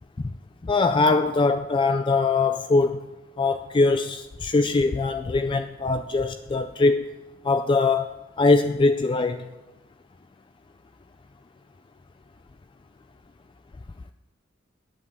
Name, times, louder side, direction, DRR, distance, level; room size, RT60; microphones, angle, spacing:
voice 1, 0.6-3.0 3.4-7.1 7.4-9.5, left 3 dB, 25° left, 0.3 m, -22 dB
9.6 x 8.3 x 7.0 m
head